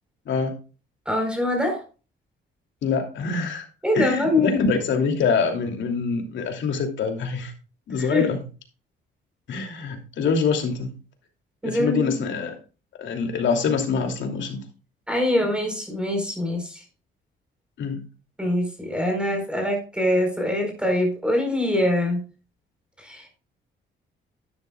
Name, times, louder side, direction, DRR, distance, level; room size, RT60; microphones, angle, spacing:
voice 1, 1.1-1.8 3.8-4.7 8.0-8.3 11.6-12.1 15.1-16.8 18.4-22.2 23.0-23.4, left 1 dB, 5° right, 2 dB, 4.5 m, -24 dB
voice 2, 2.8-3.7 3.9-7.5 7.9-8.4 9.5-11.0 11.6-12.5 13.0-14.6 17.8-18.0, left 5 dB, 70° left, 3 dB, 2.9 m, -25 dB
11.5 x 11.0 x 2.4 m, 0.33 s
cardioid pair, 90°, 20 cm